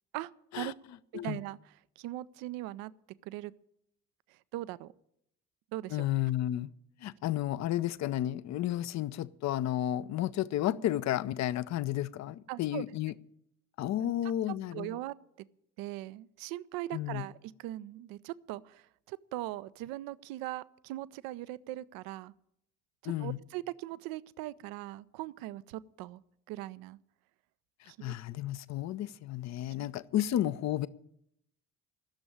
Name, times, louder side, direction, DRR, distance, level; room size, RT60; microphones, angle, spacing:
voice 1, 1.2-1.6 2.0-2.9 3.2-3.5 4.3-4.9 5.7-6.1 12.5-12.8 14.0-14.1 14.7-15.1 15.8-22.3 23.0-26.2 26.5-27.0 27.9-28.1, right 16 dB, 55° right, 0.6 m, -40 dB
voice 2, 5.9-6.7 7.0-13.2 13.8-15.0 16.9-17.3 23.0-23.4 27.8-30.9, left 12 dB, 40° left, 0.6 m, -32 dB
13.0 x 7.0 x 9.9 m
figure-of-eight pair, 45°, 43 cm